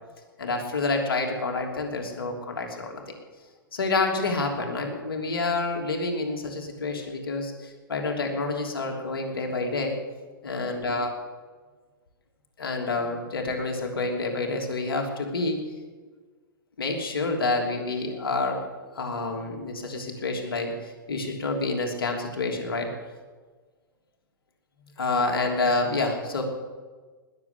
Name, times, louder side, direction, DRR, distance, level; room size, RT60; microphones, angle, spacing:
voice 1, 0.4-3.2 3.7-7.5 7.9-10.0 10.4-11.1 12.6-15.6 16.8-18.6 18.9-20.7 21.1-22.9 25.0-26.4, left 3 dB, 80° left, 2 dB, 3.1 m, -28 dB
20.0 x 7.4 x 8.6 m, 1.4 s
hypercardioid pair, 115°, 12 cm